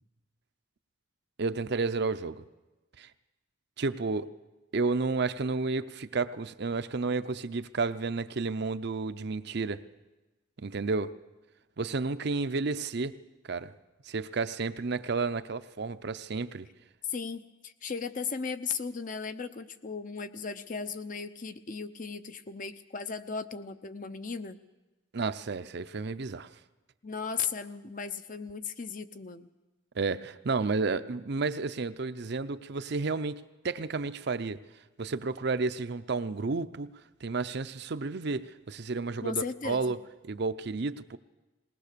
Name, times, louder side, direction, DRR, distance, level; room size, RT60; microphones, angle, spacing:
voice 1, 1.4-2.4 3.0-3.1 3.8-4.3 4.7-9.8 10.6-11.1 11.8-13.2 13.5-13.7 14.0-16.7 25.1-26.5 29.9-34.6 35.0-36.9 37.2-40.0 40.3-41.2, right 4 dB, 55° right, 0.6 m, -31 dB
voice 2, 17.1-24.6 27.0-29.5 39.2-40.0, left 5 dB, 40° left, 0.7 m, -36 dB
20.0 x 19.5 x 6.8 m
head